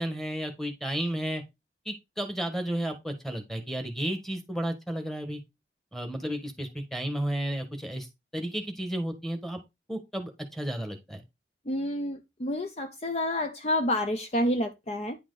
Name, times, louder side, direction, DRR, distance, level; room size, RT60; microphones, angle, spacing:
voice 1, 0.0-1.4 1.8-5.4 5.9-8.1 8.3-9.6 9.9-11.2, right 1 dB, ahead, 1.4 m, -32 dB
voice 2, 11.7-15.2, left 1 dB, 35° left, 0.6 m, -29 dB
9.8 x 4.5 x 4.0 m
head